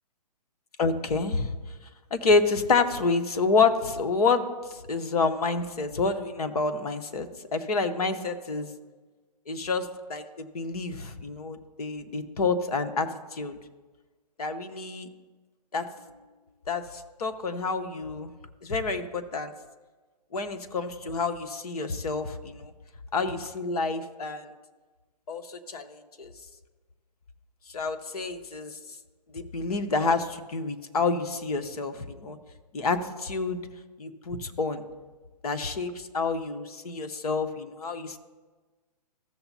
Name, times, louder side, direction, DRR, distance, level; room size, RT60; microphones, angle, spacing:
voice 1, 0.8-1.5 2.1-8.7 9.5-13.6 14.4-15.1 15.7-15.8 16.7-18.3 18.6-19.5 20.3-22.7 23.1-24.5 25.3-26.3 27.7-28.8 29.3-32.4 32.7-33.6 34.0-34.9 35.4-38.2, left 4 dB, 65° left, 9 dB, 1.1 m, -28 dB
15.5 x 6.9 x 2.8 m, 1.3 s
hypercardioid pair, 140°, 21 cm